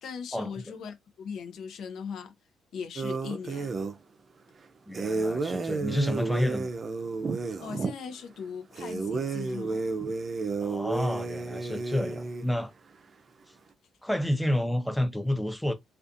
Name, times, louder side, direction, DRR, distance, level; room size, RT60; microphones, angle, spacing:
voice 1, 0.0-2.3 2.7-3.7 7.5-9.9, left 6 dB, 70° left, 0.6 m, -39 dB
sound 1, 3.0-4.0 4.9-7.9 8.7-12.5, right 4 dB, 40° right, 0.5 m, -31 dB
voice 2, 4.9-6.7 10.6-12.7 14.0-15.7, left 1 dB, 5° left, 0.5 m, -29 dB
2.4 x 2.4 x 2.6 m
cardioid pair, 90°, 0 cm